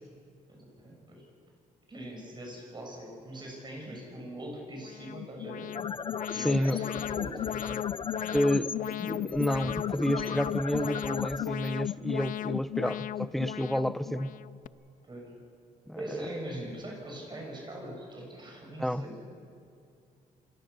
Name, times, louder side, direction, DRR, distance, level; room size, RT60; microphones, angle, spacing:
voice 1, 0.5-1.2 1.9-5.7 6.3-7.8 14.8-15.3 16.0-19.3, right 1 dB, 30° right, 0 dB, 7.1 m, -42 dB
Alarm, 4.8-14.7, left 12 dB, 65° left, 0.5 m, -36 dB
sound 1, 5.6-12.7, left 5 dB, 35° left, 0.9 m, -38 dB
voice 2, 6.3-6.8 8.3-8.7 9.0-14.3 15.9-16.0 18.8-19.1, equal, ahead, 14 dB, 0.8 m, -30 dB
26.5 x 21.5 x 7.0 m, 2.4 s
cardioid pair, 95°, 15 cm